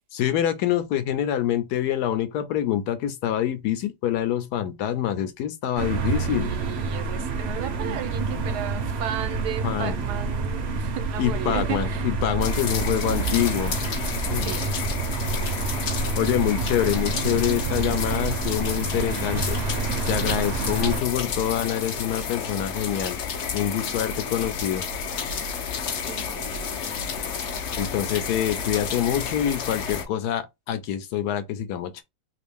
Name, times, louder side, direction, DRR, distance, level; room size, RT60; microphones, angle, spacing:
voice 1, 0.1-6.5 9.6-10.0 11.2-13.8 14.3-14.5 16.2-19.6 20.1-23.2 23.5-24.9 27.8-32.0, left 11 dB, 80° left, 1.1 m, -26 dB
sound 1, 5.8-21.0, right 4 dB, 60° right, 0.7 m, -28 dB
voice 2, 6.3-12.1 14.4-14.8 15.2-15.6 26.0-26.9, right 11 dB, 85° right, 1.2 m, -35 dB
sound 2, 12.4-30.1, left 6 dB, 60° left, 0.8 m, -31 dB
3.0 x 2.6 x 3.4 m
omnidirectional pair, 1.7 m